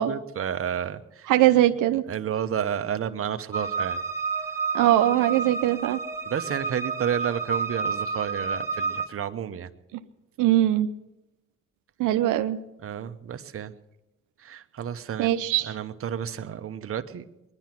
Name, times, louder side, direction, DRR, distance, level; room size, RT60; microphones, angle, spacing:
voice 1, 0.0-1.3 2.1-4.0 6.2-9.7 12.8-13.7 14.4-15.4 15.6-17.2, right 9 dB, 45° right, 9 dB, 1.0 m, -31 dB
voice 2, 1.3-2.0 4.7-6.0 10.4-10.9 12.0-12.6 15.2-15.7, right 13 dB, 90° right, 9 dB, 0.7 m, -21 dB
sound 1, 3.5-9.1, right 5 dB, 10° right, 1.4 m, -30 dB
21.0 x 10.5 x 5.9 m, 0.94 s
cardioid pair, 90°, 30 cm